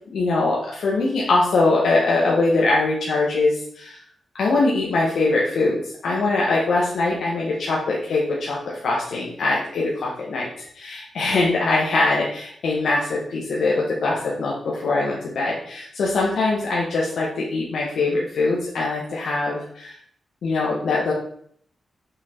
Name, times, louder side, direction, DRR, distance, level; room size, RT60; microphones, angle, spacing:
voice 1, 0.1-4.0 4.3-20.0 20.4-21.1, left 3 dB, 80° left, -4 dB, 1.5 m, -22 dB
6.0 x 5.9 x 4.5 m, 0.62 s
wide cardioid pair, 160°, 0 cm